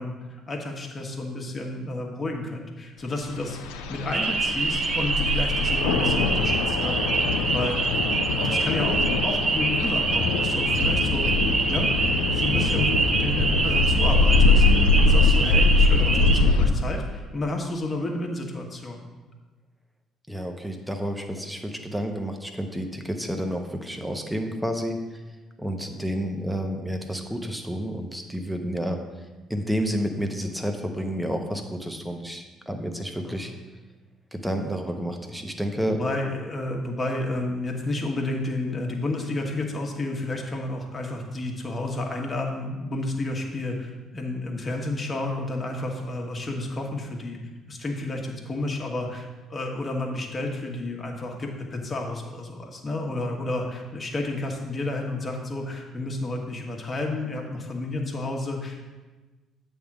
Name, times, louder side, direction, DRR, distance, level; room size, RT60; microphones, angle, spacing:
voice 1, 0.0-3.6 3.9-7.2 7.5-7.8 8.4-11.9 12.2-19.0 33.3-33.4 35.9-47.4 47.7-58.8, left 2 dB, 35° left, 1 dB, 1.4 m, -31 dB
sound 1, 3.3-16.7, left 3 dB, 75° left, 0.5 m, -23 dB
sound 2, 4.1-16.4, right 4 dB, 40° right, 0.7 m, -26 dB
voice 2, 8.3-9.0 12.6-12.9 20.3-25.2 25.6-29.0 29.5-33.5 34.3-36.0, equal, 5° right, 4 dB, 1.0 m, -30 dB
8.4 x 3.6 x 6.0 m, 1.2 s
hypercardioid pair, 50°, 0 cm